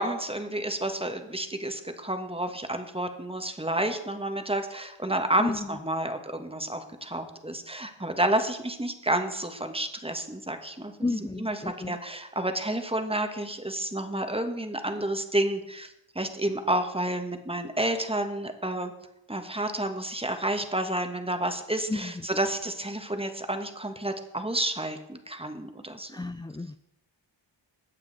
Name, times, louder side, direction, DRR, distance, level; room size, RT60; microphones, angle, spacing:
voice 1, 0.0-18.9 19.3-26.1, right 1 dB, 10° right, 6 dB, 1.4 m, -30 dB
voice 2, 5.4-5.8 11.0-12.0 21.9-22.3 26.1-26.8, left 3 dB, 10° left, 10 dB, 0.3 m, -32 dB
21.0 x 8.3 x 4.0 m, 0.85 s
wide cardioid pair, 85°, 47 cm